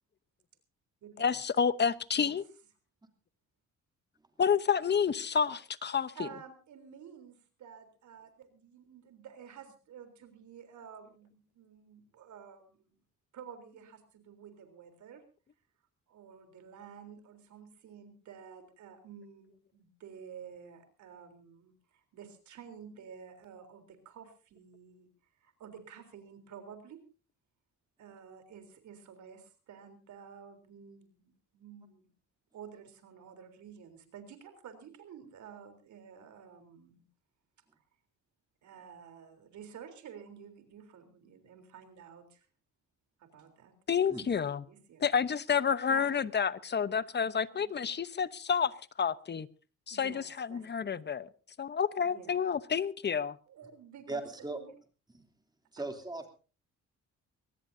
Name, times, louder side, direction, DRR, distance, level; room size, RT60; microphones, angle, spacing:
voice 1, 1.2-2.4 4.4-6.3 43.9-44.6 45.0-48.7 49.0-49.5 49.9-51.3 51.6-53.4, left 6 dB, 35° left, 16 dB, 0.9 m, -29 dB
voice 2, 6.1-12.9 13.3-15.2 16.1-25.1 25.4-27.0 28.0-32.1 32.5-37.0 38.6-42.5 43.2-43.7 44.2-44.3 44.7-45.0 45.9-46.3 47.5-47.8 49.9-50.7 52.0-52.4 53.5-54.7 55.8-55.9, right 7 dB, 70° right, 8 dB, 3.7 m, -51 dB
voice 3, 54.1-54.6 55.1-55.3 55.7-56.3, right 2 dB, 15° right, 5 dB, 3.0 m, -38 dB
22.5 x 19.0 x 2.7 m, 0.35 s
cardioid pair, 90°, 30 cm